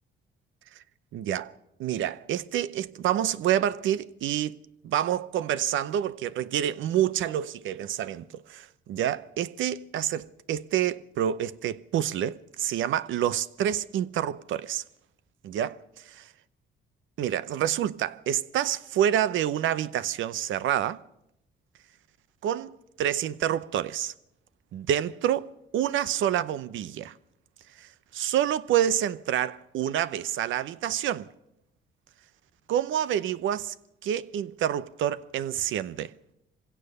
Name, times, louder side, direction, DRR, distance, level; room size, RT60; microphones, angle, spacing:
voice 1, 1.1-1.5 1.8-4.5 4.8-14.8 15.4-15.8 17.2-21.0 22.4-24.1 24.7-27.1 27.8-31.3 32.7-33.7 34.0-36.1, right 11 dB, 80° right, 0.8 m, -28 dB
23.5 x 16.5 x 6.7 m
cardioid pair, 90°, 20 cm